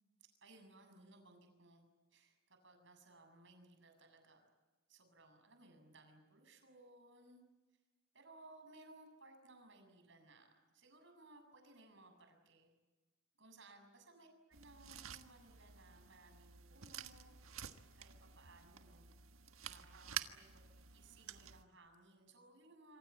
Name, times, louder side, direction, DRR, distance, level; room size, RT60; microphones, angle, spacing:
voice 1, 0.4-4.5 4.9-7.4 8.1-12.7 13.4-19.2 19.6-20.6 20.9-23.0, right 2 dB, 55° right, 5 dB, 7.3 m, -62 dB
sound 1, 14.5-21.6, right 9 dB, 75° right, 1.5 m, -50 dB
27.0 x 25.5 x 8.3 m, 1.2 s
head